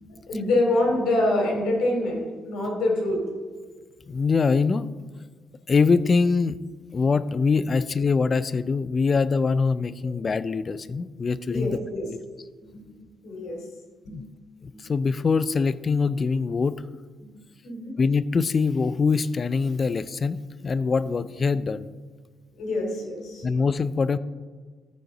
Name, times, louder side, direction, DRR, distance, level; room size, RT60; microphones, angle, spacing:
voice 1, 0.1-3.2 11.5-12.1 12.6-12.9 13.2-13.6 14.0-14.3 14.7-14.8 17.2-17.3 17.6-17.9 22.5-23.4, left 1 dB, 80° left, 0 dB, 2.6 m, -26 dB
voice 2, 4.1-4.9 5.7-6.6 6.9-11.7 12.1-12.2 14.1-14.2 14.6-16.8 18.0-21.9 23.4-24.2, left 4 dB, 40° left, 16 dB, 0.4 m, -23 dB
13.5 x 5.3 x 3.8 m, 1.5 s
cardioid pair, 90°, 0 cm